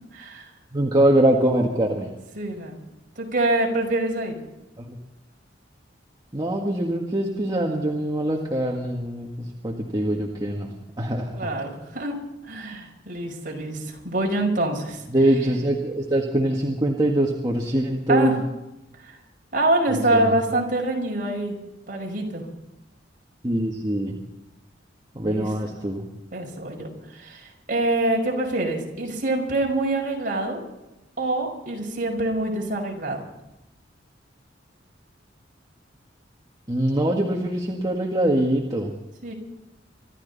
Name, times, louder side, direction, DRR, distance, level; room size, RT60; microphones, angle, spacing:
voice 1, 0.1-0.5 2.4-2.8 3.2-4.4 11.4-12.1 12.5-15.0 18.1-18.4 19.0-19.2 19.5-21.5 21.9-22.5 25.2-25.5 26.3-30.6 31.2-33.2 39.2-39.3, right 2 dB, 45° right, 0 dB, 5.4 m, -25 dB
voice 2, 0.7-2.1 4.8-5.0 6.3-10.7 11.0-11.6 15.1-18.4 19.9-20.4 23.4-24.2 25.1-26.0 36.7-38.9, right 1 dB, 20° right, -2 dB, 1.8 m, -23 dB
25.5 x 13.5 x 4.1 m, 0.98 s
head